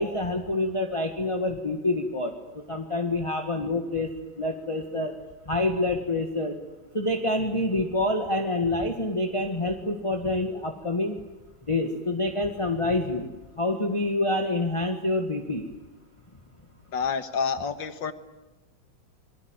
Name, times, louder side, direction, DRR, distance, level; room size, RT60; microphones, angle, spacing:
voice 1, 0.0-2.3 2.7-4.1 4.4-5.1 5.5-6.6 6.9-11.2 11.7-13.3 13.6-15.7, left 2 dB, 15° left, 3 dB, 1.8 m, -27 dB
voice 2, 16.9-18.1, left 6 dB, 65° left, 11 dB, 2.1 m, -28 dB
27.0 x 21.5 x 9.1 m, 1.1 s
omnidirectional pair, 2.2 m